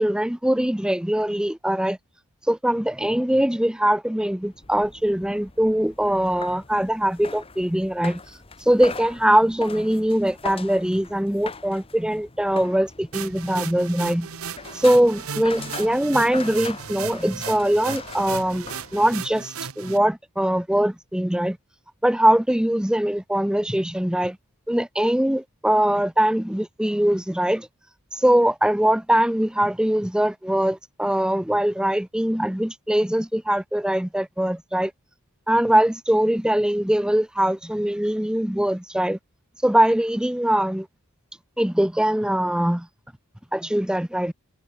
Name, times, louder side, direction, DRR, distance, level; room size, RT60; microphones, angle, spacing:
voice 1, 0.0-2.0 2.5-8.2 8.7-14.3 14.8-18.7 18.9-21.6 22.0-24.4 24.7-27.7 28.1-34.9 35.5-39.2 39.6-40.9 41.6-42.9 43.5-44.3, right 1 dB, 5° right, 0.5 m, -22 dB
sound 1, 4.4-19.3, left 4 dB, 25° left, 1.6 m, -41 dB
sound 2, 13.1-20.0, right 7 dB, 85° right, 1.2 m, -35 dB
head